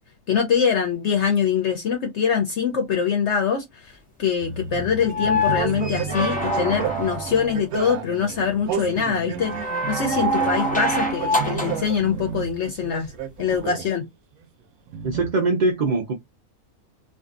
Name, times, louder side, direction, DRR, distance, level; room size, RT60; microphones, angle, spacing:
voice 1, 0.3-3.9 4.2-9.5 9.9-13.1 13.4-14.1, left 7 dB, 65° left, 0.8 m, -23 dB
sound 1, 4.4-13.9 14.9-15.3, right 7 dB, 80° right, 1.0 m, -32 dB
sound 2, 5.0-7.6 9.4-11.9 13.5-13.6, equal, 10° left, 0.4 m, -25 dB
voice 2, 15.0-16.1, right 3 dB, 60° right, 0.5 m, -22 dB
2.6 x 2.4 x 2.4 m
omnidirectional pair, 1.5 m